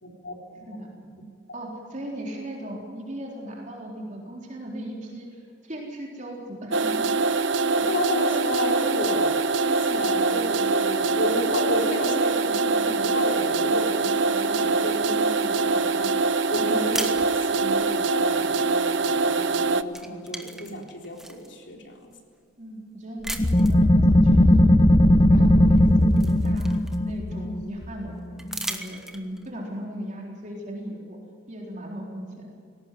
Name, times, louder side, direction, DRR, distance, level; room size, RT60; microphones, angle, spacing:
voice 1, 0.0-0.8 1.1-1.2 7.7-22.1, left 1 dB, 65° left, 1 dB, 3.8 m, -32 dB
voice 2, 1.5-7.1 16.6-16.8 22.6-25.0 25.3-26.8 27.0-31.2 31.5-32.5, right 1 dB, 40° right, -1 dB, 4.0 m, -37 dB
sound 1, 6.7-19.8, right 3 dB, 70° right, 0.8 m, -23 dB
sound 2, 16.9-17.9 19.3-19.6 19.9-21.5 22.1-22.2 23.2-23.8 25.3-25.4 25.8-27.3 28.4-29.5, right 1 dB, ahead, 1.4 m, -36 dB
sound 3, 23.3-28.6, left 1 dB, 25° left, 0.8 m, -18 dB
19.5 x 18.0 x 9.5 m, 2.3 s
head